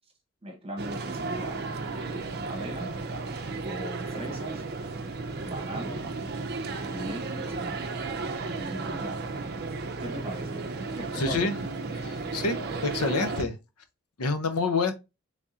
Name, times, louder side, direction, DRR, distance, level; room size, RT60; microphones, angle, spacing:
voice 1, 0.4-1.6 2.0-3.0 3.6-4.6 5.4-6.1 6.9-7.7 8.5-9.2 9.7-10.7 11.0-11.5, right 1 dB, 25° right, 1.1 m, -39 dB
sound 1, 0.8-13.4, right 3 dB, 45° right, 0.5 m, -34 dB
voice 2, 11.1-11.6 12.3-13.6 14.2-14.9, left 3 dB, 90° left, 0.7 m, -27 dB
3.6 x 3.4 x 2.7 m
head